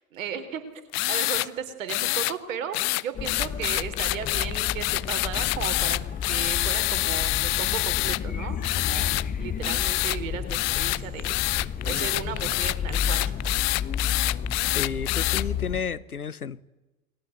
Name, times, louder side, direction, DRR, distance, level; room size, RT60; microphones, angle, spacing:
voice 1, 0.1-0.6 1.1-6.0 6.3-13.4, right 7 dB, 65° right, 4.0 m, -35 dB
sound 1, 0.9-1.5 1.9-2.3 2.7-8.2 8.6-9.2 9.6-10.2 10.5-15.4, left 24 dB, 40° left, 0.8 m, -26 dB
sound 2, 3.1-15.8, left 7 dB, 20° left, 1.1 m, -32 dB
voice 2, 14.7-16.6, left 6 dB, 85° left, 0.9 m, -32 dB
29.5 x 21.5 x 8.1 m
figure-of-eight pair, 80°, 43 cm